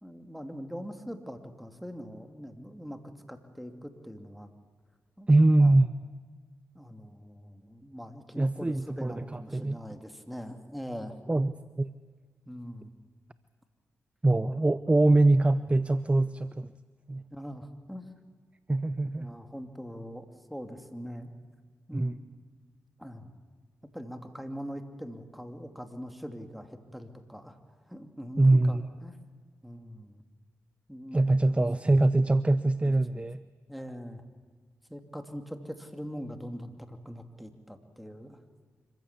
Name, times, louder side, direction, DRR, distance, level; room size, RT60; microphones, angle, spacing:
voice 1, 0.0-3.0 3.3-4.5 5.2-5.3 5.6-5.7 6.7-8.7 9.0-11.1 12.5-12.9 17.3-18.1 19.2-20.2 20.5-21.3 21.9-22.1 23.0-23.4 23.9-27.6 27.9-29.2 29.6-30.2 30.9-31.7 33.7-34.2 34.9-38.4, equal, ahead, 7 dB, 2.7 m, -42 dB
voice 2, 5.3-6.1 8.4-9.8 11.3-11.9 14.2-16.7 17.1-17.2 18.7-19.3 21.9-22.1 28.4-28.8 31.1-33.4, right 2 dB, 20° right, 15 dB, 0.7 m, -23 dB
25.5 x 15.5 x 8.4 m, 1.5 s
cardioid pair, 50°, 6 cm